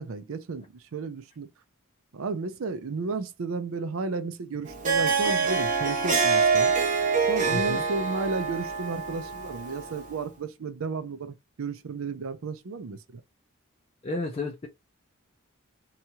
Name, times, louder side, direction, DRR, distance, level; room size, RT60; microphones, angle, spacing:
voice 1, 0.0-1.5 2.1-6.7 7.2-13.2, right 4 dB, 80° right, 0.5 m, -33 dB
Harp, 4.7-10.1, right 5 dB, 40° right, 0.9 m, -25 dB
voice 2, 7.5-7.8 14.0-14.7, left 2 dB, 30° left, 0.4 m, -32 dB
2.8 x 2.3 x 2.8 m
head